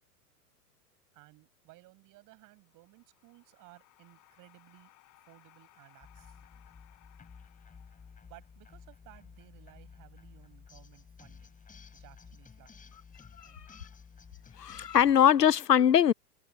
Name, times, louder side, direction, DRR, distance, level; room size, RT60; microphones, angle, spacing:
voice 1, 1.1-4.9 5.3-6.6 8.3-11.6 11.9-13.6, right 20 dB, 40° right, 7.7 m, -58 dB
sound 1, 2.4-8.8, left 18 dB, 40° left, 5.7 m, -64 dB
sound 2, 6.0-15.1, left 5 dB, 15° left, 5.9 m, -53 dB
voice 2, 13.4-13.8 14.6-16.1, left 9 dB, 90° left, 0.7 m, -23 dB
figure-of-eight pair, 95°, 47 cm